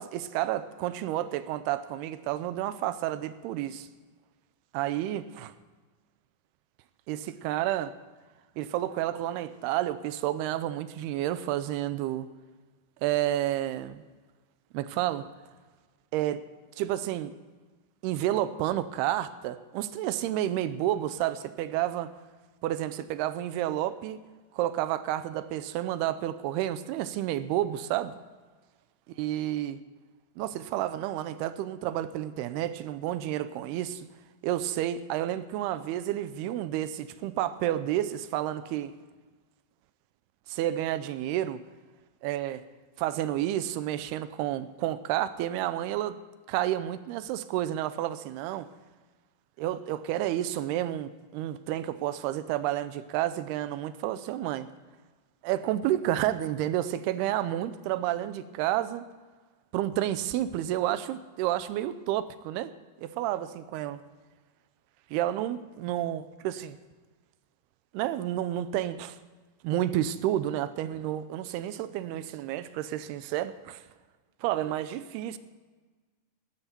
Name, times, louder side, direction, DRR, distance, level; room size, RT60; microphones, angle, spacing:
voice 1, 0.0-3.9 4.7-5.5 7.1-8.0 8.6-12.3 13.0-14.0 14.7-15.3 16.1-16.4 16.8-17.3 18.0-22.1 22.6-24.2 24.5-28.2 29.2-29.8 30.4-34.1 34.4-38.9 40.5-41.6 42.2-42.6 43.0-46.2 46.5-48.7 49.6-54.7 55.4-59.1 59.7-62.7 63.0-64.0 65.1-66.8 67.9-69.2 69.6-73.8 74.4-75.4, right 13 dB, 90° right, 2.7 m, -30 dB
18.0 x 12.5 x 4.4 m
omnidirectional pair, 4.5 m